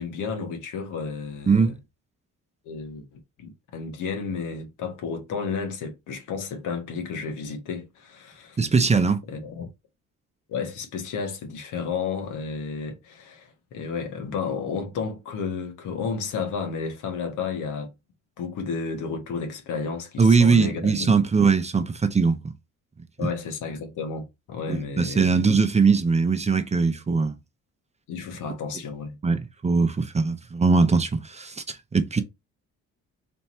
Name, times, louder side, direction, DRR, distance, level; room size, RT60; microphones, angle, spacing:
voice 1, 0.0-1.7 2.6-8.6 9.3-9.7 10.5-17.9 18.4-21.2 23.2-25.3 28.1-29.2, left 5 dB, 85° left, 1.3 m, -32 dB
voice 2, 8.6-9.2 20.2-22.5 23.2-23.3 24.7-27.3 29.2-32.2, right 4 dB, 20° right, 0.6 m, -21 dB
3.5 x 2.8 x 4.2 m
cardioid pair, 90°, 30 cm